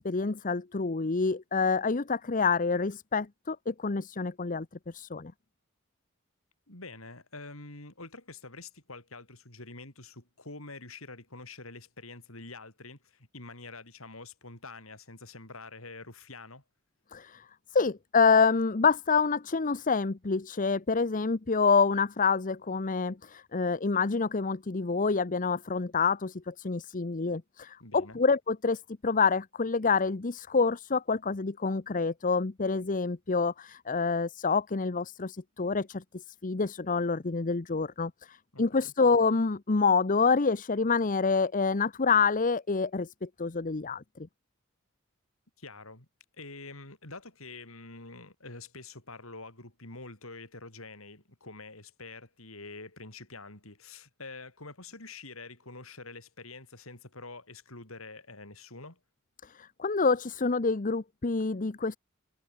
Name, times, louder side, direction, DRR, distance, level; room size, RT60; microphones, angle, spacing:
voice 1, 0.0-4.7 4.9-5.3 17.1-17.4 17.7-28.8 29.0-36.0 36.4-38.1 38.6-44.0 59.6-62.0, left 4 dB, 40° left, 0.8 m, -27 dB
voice 2, 6.7-16.6 27.8-28.2 38.5-38.9 45.6-46.1 46.3-59.0, left 3 dB, 75° left, 6.9 m, -46 dB
head